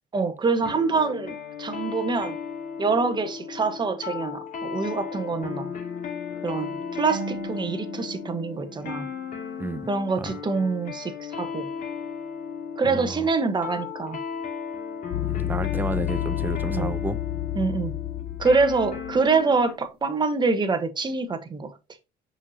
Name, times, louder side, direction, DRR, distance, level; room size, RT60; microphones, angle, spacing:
voice 1, 0.1-2.4 2.8-5.7 6.4-9.1 9.9-11.7 12.8-14.2 16.7-16.9 17.5-17.9 18.4-21.7, right 4 dB, 25° right, 1.1 m, -25 dB
sound 1, 0.6-19.8, left 6 dB, 50° left, 2.4 m, -35 dB
Marimba xylophone / Wood, 7.1-9.8, right 4 dB, 50° right, 1.2 m, -39 dB
voice 2, 12.8-13.3 15.2-17.2, right 2 dB, 10° right, 0.6 m, -31 dB
sound 2, 15.1-19.3, left 16 dB, 70° left, 0.6 m, -30 dB
6.2 x 5.5 x 2.8 m
cardioid pair, 110°, 17 cm